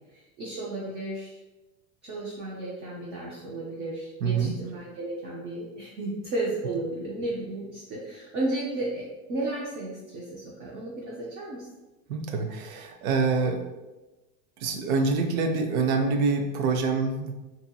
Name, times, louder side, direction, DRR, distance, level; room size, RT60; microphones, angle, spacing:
voice 1, 0.1-1.4 2.0-9.0 9.3-11.7, right 2 dB, 25° right, -5 dB, 0.4 m, -33 dB
voice 2, 4.2-4.5 12.1-13.6 14.6-17.3, right 4 dB, 85° right, 5 dB, 0.6 m, -26 dB
2.7 x 2.6 x 2.2 m, 1.1 s
supercardioid pair, 120°, 42 cm